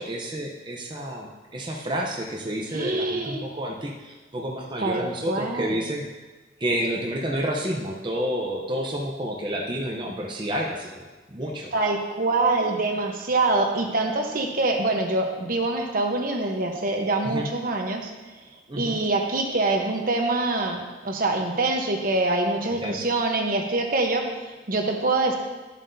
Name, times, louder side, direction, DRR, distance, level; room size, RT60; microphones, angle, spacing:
voice 1, 0.0-6.0 6.6-11.7 17.2-17.5 18.7-19.0 22.8-23.0, equal, 25° right, -1 dB, 0.8 m, -30 dB
voice 2, 2.7-3.5 4.8-5.8 11.7-18.1 18.8-24.3 24.7-25.4, right 2 dB, 50° right, 3 dB, 1.0 m, -25 dB
12.5 x 7.5 x 2.7 m, 1.2 s
head